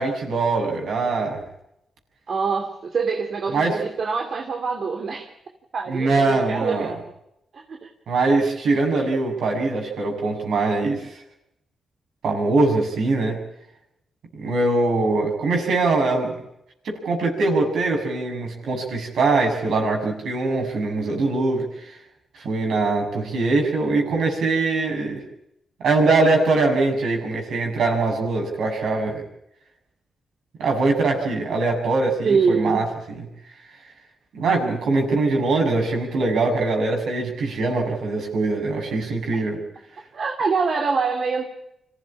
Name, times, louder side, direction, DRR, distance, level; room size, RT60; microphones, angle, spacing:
voice 1, 0.0-1.4 3.5-3.8 5.9-6.9 8.1-11.1 12.2-13.4 14.4-16.4 16.9-21.7 22.4-25.2 25.8-29.2 30.6-32.8 33.1-33.3 34.3-39.6, right 3 dB, 80° right, 2 dB, 6.9 m, -22 dB
voice 2, 2.3-5.3 5.7-7.1 7.5-7.9 32.2-32.9 39.3-39.4 40.1-41.4, right 5 dB, 60° right, 3 dB, 2.6 m, -24 dB
25.5 x 15.5 x 8.8 m, 0.83 s
cardioid pair, 60°, 0 cm